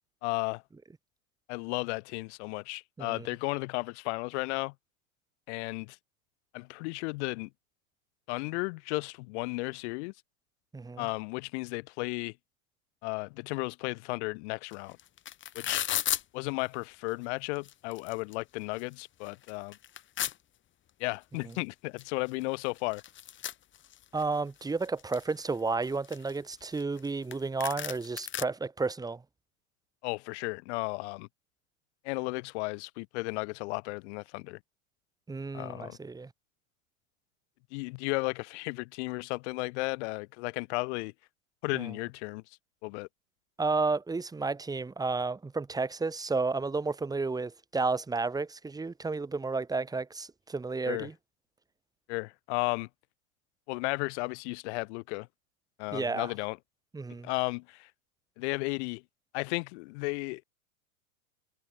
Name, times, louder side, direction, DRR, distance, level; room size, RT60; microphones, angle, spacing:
voice 1, 0.2-0.6 1.5-4.7 5.5-6.0 6.5-7.5 8.3-10.1 11.0-12.3 13.0-15.0 15.5-15.8 16.3-19.8 21.0-23.0 30.0-31.3 32.0-34.6 35.5-36.0 37.7-41.1 41.6-42.4 42.8-43.1 50.9-51.1 52.1-52.9 53.7-55.3 55.8-56.6 57.1-57.9 58.4-59.0 59.3-60.4, left 27 dB, 50° left, 4.7 m, -34 dB
voice 2, 10.7-11.1 24.1-29.2 35.3-36.3 41.7-41.9 43.6-51.1 55.9-56.3 56.9-57.3, right 3 dB, 10° right, 3.5 m, -32 dB
sound 1, 14.7-14.8 15.0-16.2 17.1-17.2 17.6-18.3 18.8-18.9 19.3-20.3 21.5-21.6 22.0-22.1 22.3-24.2 24.6-25.3 25.8-27.1 27.3-27.4 27.6-28.4, left 11 dB, 25° left, 7.1 m, -34 dB
hypercardioid pair, 130°, 42 cm